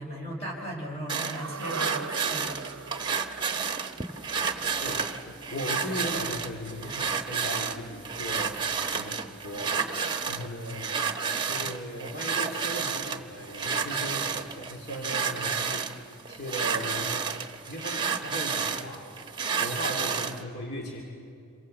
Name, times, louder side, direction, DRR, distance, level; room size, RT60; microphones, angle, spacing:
voice 1, 0.0-2.8, equal, 30° left, -2 dB, 4.6 m, -37 dB
sound 1, 1.1-20.4, right 6 dB, 20° right, 1.1 m, -31 dB
sound 2, 1.4-5.7 5.9-6.0, right 5 dB, 85° right, 0.6 m, -40 dB
voice 2, 4.3-9.8 10.3-10.9 11.4-15.9 16.3-17.3 17.7-21.0, equal, 50° left, 0 dB, 2.8 m, -38 dB
27.0 x 23.5 x 7.8 m, 2.5 s
head